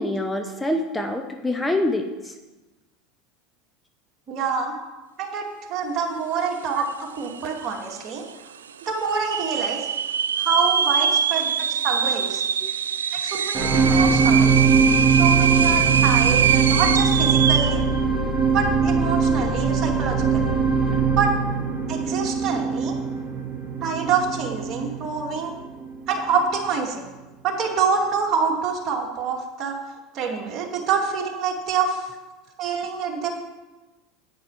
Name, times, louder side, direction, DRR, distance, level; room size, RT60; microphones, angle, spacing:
voice 1, 0.0-2.3 11.0-11.2 12.6-12.7 14.3-14.4, left 1 dB, 10° left, 4 dB, 1.0 m, -26 dB
voice 2, 4.3-4.7 5.2-8.2 8.8-9.9 10.4-12.4 13.1-14.7 15.1-17.8 18.5-20.5 21.2-21.3 21.9-22.9 23.8-25.5 26.1-27.1 27.4-29.8 30.1-32.1 32.6-33.3, right 5 dB, 45° right, 1 dB, 2.4 m, -26 dB
sound 1, 6.9-7.0 7.2-7.8 8.3-8.4 9.1-17.8, right 7 dB, 85° right, 0.4 m, -23 dB
sound 2, 13.5-25.9 26.5-26.6, right 5 dB, 20° right, 3.5 m, -21 dB
10.0 x 9.4 x 4.9 m, 1.1 s
hypercardioid pair, 80°, 0 cm